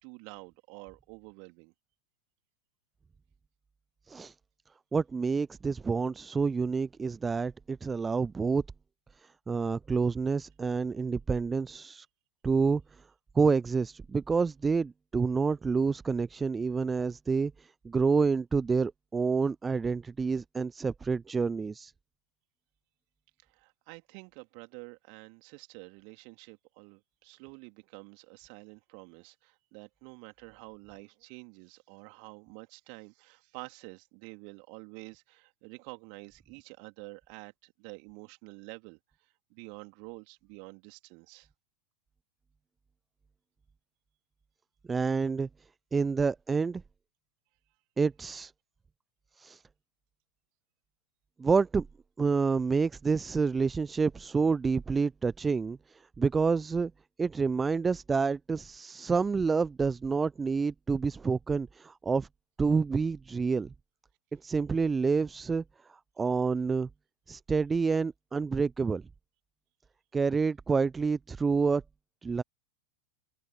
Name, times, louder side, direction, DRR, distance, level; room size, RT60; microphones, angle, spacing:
voice 1, 0.0-1.7 23.4-41.5, right 40 dB or more, 45° right, 3.4 m, -49 dB
voice 2, 4.9-8.6 9.2-12.1 12.4-12.8 13.3-21.9 44.9-45.5 45.9-46.8 48.0-48.5 49.4-49.6 51.4-51.9 52.2-56.9 57.2-62.3 62.6-63.7 64.3-65.6 65.9-66.9 67.3-69.0 70.1-71.8 72.2-72.4, right 5 dB, 15° right, 0.7 m, -28 dB
figure-of-eight pair, 90°, 0 cm